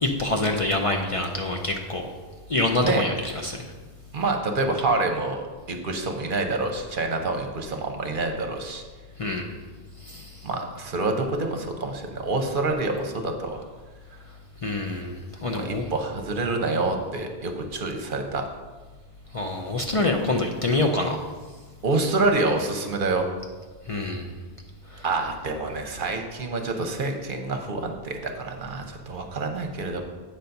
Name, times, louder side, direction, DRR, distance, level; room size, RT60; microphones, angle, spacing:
voice 1, 0.0-2.0 2.5-3.7 9.2-9.6 10.0-10.5 14.6-15.8 19.3-21.2 23.9-24.3 24.9-25.0, left 2 dB, 40° left, 2 dB, 0.6 m, -26 dB
voice 2, 4.1-8.8 10.4-13.6 15.5-18.4 21.8-23.3 25.0-30.0, right 3 dB, 60° right, 4 dB, 0.9 m, -27 dB
8.3 x 4.0 x 5.7 m, 1.4 s
omnidirectional pair, 1.1 m